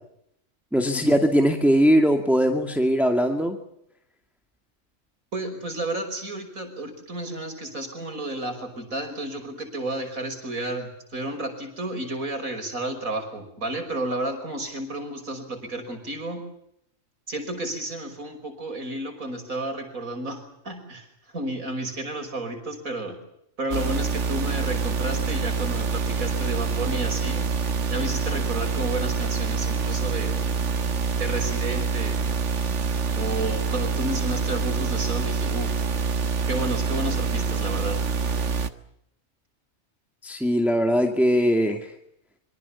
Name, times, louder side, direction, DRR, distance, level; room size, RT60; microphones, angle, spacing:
voice 1, 0.7-3.6 40.2-41.9, equal, ahead, 4 dB, 2.3 m, -20 dB
voice 2, 5.3-16.4 17.3-23.2 23.6-27.5 27.9-30.4 31.2-32.2 33.2-35.8 36.5-38.0, right 2 dB, 90° right, 7 dB, 6.1 m, -32 dB
sound 1, 23.7-38.7, right 5 dB, 60° right, 1.7 m, -26 dB
26.0 x 24.5 x 7.1 m, 0.75 s
omnidirectional pair, 1.4 m